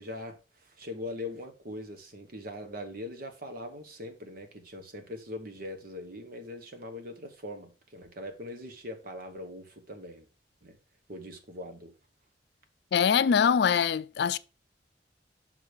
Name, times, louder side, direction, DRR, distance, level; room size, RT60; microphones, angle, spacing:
voice 1, 0.0-10.3 10.6-10.8 11.1-11.9, left 1 dB, 55° right, 1.2 m, -41 dB
voice 2, 12.9-14.4, left 7 dB, 65° left, 0.4 m, -23 dB
5.9 x 4.9 x 4.6 m
head